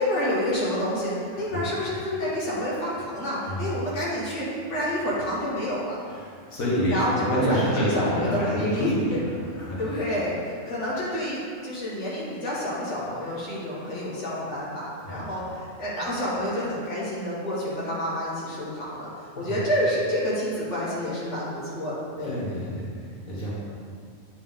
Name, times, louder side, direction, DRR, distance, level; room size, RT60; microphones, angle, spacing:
voice 1, 0.0-6.0 6.9-9.2 9.8-22.4, equal, 60° left, -8 dB, 2.0 m, -29 dB
voice 2, 6.1-9.0 9.6-9.9 15.1-15.2 19.3-19.5 22.2-22.9 23.3-23.5, equal, 90° left, -8 dB, 1.9 m, -27 dB
9.1 x 4.5 x 3.7 m, 2.2 s
omnidirectional pair, 1.4 m